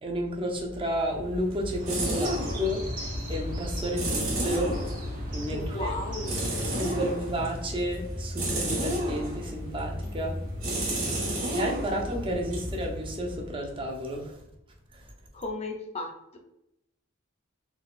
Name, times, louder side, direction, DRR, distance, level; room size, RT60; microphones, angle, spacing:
voice 1, 0.0-4.8 5.3-5.9 6.7-10.3 11.5-14.4 14.9-15.0, equal, 25° right, 0 dB, 0.5 m, -32 dB
sound 1, 0.9-13.6, equal, 70° right, 1.5 m, -32 dB
sound 2, 1.8-6.9, equal, 40° right, 1.0 m, -37 dB
voice 2, 5.5-6.4 15.3-16.4, left 2 dB, 30° left, 3 dB, 0.5 m, -35 dB
3.8 x 2.3 x 2.4 m, 0.83 s
head